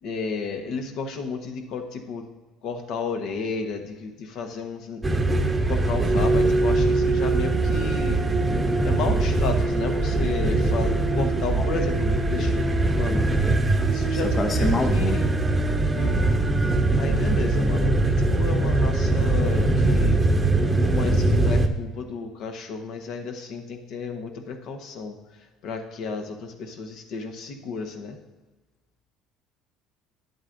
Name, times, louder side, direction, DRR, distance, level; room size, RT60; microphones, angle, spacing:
voice 1, 0.0-2.3 2.6-8.2 8.8-12.6 12.9-13.3 13.9-15.4 15.9-20.2 20.8-28.2, left 4 dB, 65° left, 5 dB, 1.0 m, -33 dB
sound 1, 5.0-21.7, right 2 dB, 15° right, 0.8 m, -22 dB
voice 2, 14.3-15.2, left 3 dB, 30° left, 5 dB, 0.6 m, -26 dB
9.6 x 8.0 x 2.6 m, 1.2 s
supercardioid pair, 95°, 0 cm